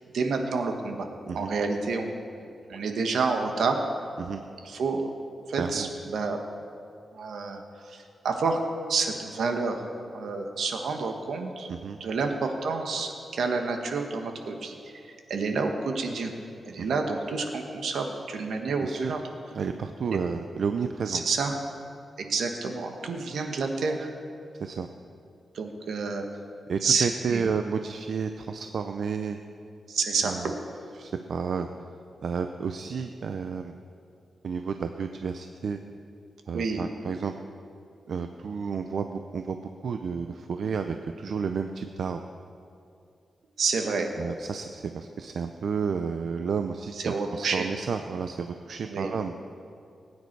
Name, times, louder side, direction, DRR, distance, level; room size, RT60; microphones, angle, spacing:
voice 1, 0.1-1.1 1.3-2.1 2.7-3.8 4.6-5.1 5.5-6.4 7.1-7.6 7.9-8.6 8.9-9.8 10.1-11.7 12.0-14.9 15.3-16.3 16.7-19.2 20.1-20.2 21.1-21.5 22.2-24.1 25.5-26.2 26.8-27.4 29.9-30.5 36.5-36.8 43.6-44.1 47.0-47.6 48.8-49.1, right 4 dB, 80° right, 4 dB, 1.4 m, -29 dB
voice 2, 5.6-5.9 11.7-12.0 18.8-19.1 19.5-21.2 24.6-24.9 26.7-29.4 30.2-30.5 31.0-31.7 32.2-33.7 34.4-35.8 36.5-37.3 38.1-42.2 44.2-49.3, right 6 dB, 65° right, 7 dB, 0.5 m, -31 dB
20.5 x 9.6 x 4.7 m, 2.5 s
wide cardioid pair, 120°, 0 cm